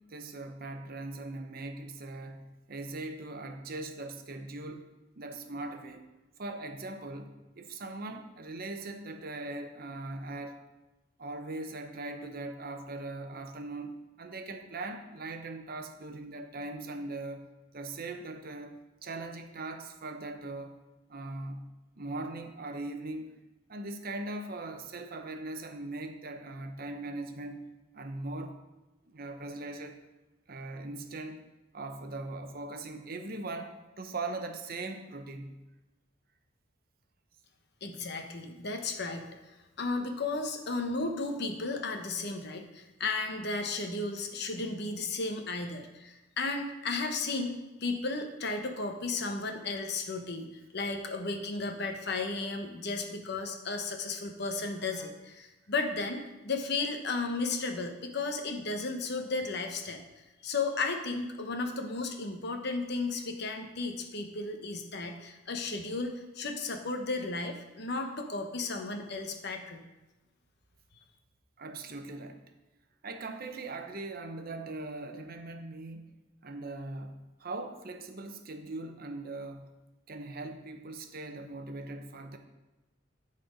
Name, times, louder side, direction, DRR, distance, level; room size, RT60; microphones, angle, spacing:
voice 1, 0.0-4.9 5.2-6.0 6.4-10.6 11.2-17.5 17.7-20.8 21.1-21.7 22.0-23.3 23.7-27.7 27.9-28.6 29.0-30.0 30.5-31.5 31.7-35.6 71.6-72.4 73.0-79.8 80.1-82.4, right 2 dB, 50° right, 6 dB, 0.8 m, -40 dB
voice 2, 37.8-39.3 39.8-60.0 60.4-69.8, left 3 dB, 60° left, 5 dB, 1.0 m, -34 dB
12.0 x 4.3 x 5.1 m, 1.0 s
head